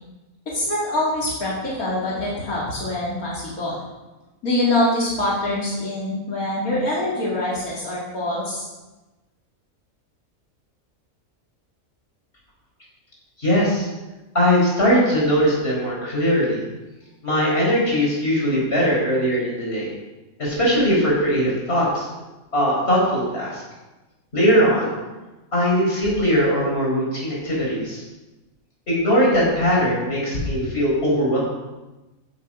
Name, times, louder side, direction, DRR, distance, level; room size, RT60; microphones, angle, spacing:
voice 1, 0.5-3.8 4.4-8.6, left 1 dB, 85° left, -6 dB, 3.0 m, -24 dB
voice 2, 13.4-13.9 14.3-16.6 17.2-19.9 20.4-22.1 22.5-23.6 24.3-25.0 25.5-28.0 28.9-31.4, equal, 45° left, -5 dB, 5.2 m, -20 dB
15.5 x 7.5 x 5.1 m, 1.1 s
omnidirectional pair, 1.5 m